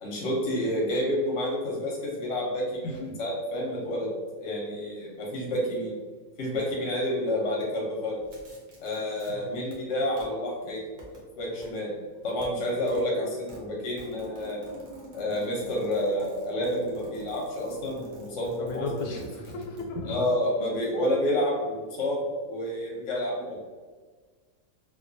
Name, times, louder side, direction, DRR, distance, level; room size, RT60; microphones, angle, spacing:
voice 1, 0.0-6.0 6.4-8.2 8.8-10.8 11.4-11.9 12.2-14.6 15.1-18.9 20.1-23.6, left 1 dB, 60° left, -3 dB, 0.9 m, -29 dB
voice 2, 2.8-3.2 9.3-9.6 18.6-20.1 23.1-23.3, left 2 dB, 85° left, 1 dB, 1.1 m, -35 dB
sound 1, 8.2-9.3 9.6-10.2 10.8-11.2 11.6-11.7 12.0-12.5 12.8-13.1 13.3-19.8, equal, 55° right, 0.5 m, -45 dB
2.6 x 2.2 x 2.5 m, 1.4 s
omnidirectional pair, 1.6 m